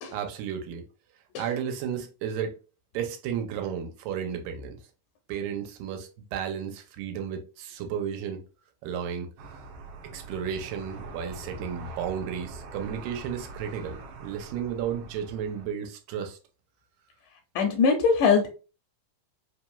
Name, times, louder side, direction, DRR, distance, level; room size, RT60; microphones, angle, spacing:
voice 1, 0.1-0.9 1.4-2.5 2.9-4.8 5.3-8.4 8.8-9.3 10.1-16.4, right 8 dB, 85° right, 2.4 m, -33 dB
sound 1, 9.4-15.7, right 3 dB, 70° right, 2.0 m, -43 dB
voice 2, 17.6-18.5, left 5 dB, 80° left, 2.0 m, -22 dB
5.2 x 3.0 x 2.2 m
omnidirectional pair, 3.8 m